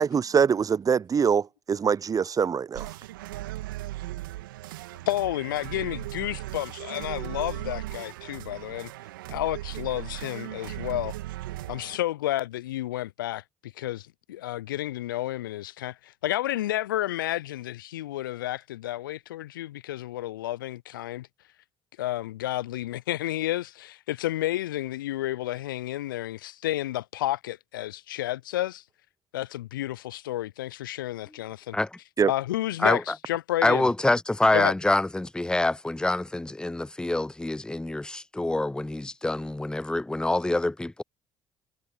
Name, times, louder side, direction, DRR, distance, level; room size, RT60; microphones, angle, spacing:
voice 1, 0.3-2.9 32.2-32.3, right 6 dB, 30° right, 0.7 m, -23 dB
sound 1, 2.7-12.0, right 17 dB, 75° right, 2.7 m, -37 dB
voice 2, 5.1-8.9 9.3-11.1 11.7-21.3 22.0-28.8 29.3-31.8 32.2-33.0 33.3-33.9 34.5-34.7, left 14 dB, 80° left, 0.5 m, -31 dB
voice 3, 32.8-33.2 33.6-41.0, left 2 dB, 5° left, 0.7 m, -26 dB
figure-of-eight pair, 50°, 11 cm